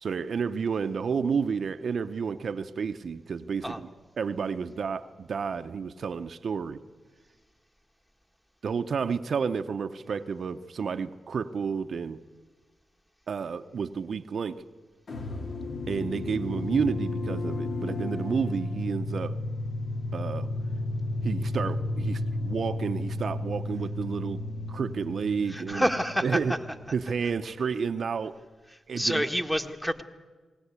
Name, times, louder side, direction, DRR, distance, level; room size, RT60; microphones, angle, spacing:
voice 1, 0.0-3.9 4.2-6.8 8.6-12.2 13.3-14.6 15.9-19.4 20.1-20.5 21.2-24.4 24.7-25.9 26.2-26.5 26.9-28.4 28.9-29.3, right 6 dB, 65° right, 8 dB, 0.8 m, -30 dB
sound 1, 15.1-27.3, left 2 dB, 60° left, 2.3 m, -33 dB
voice 2, 25.5-26.6 29.0-30.0, equal, 5° left, 5 dB, 1.6 m, -28 dB
20.0 x 18.0 x 8.3 m, 1.4 s
cardioid pair, 65°, 0 cm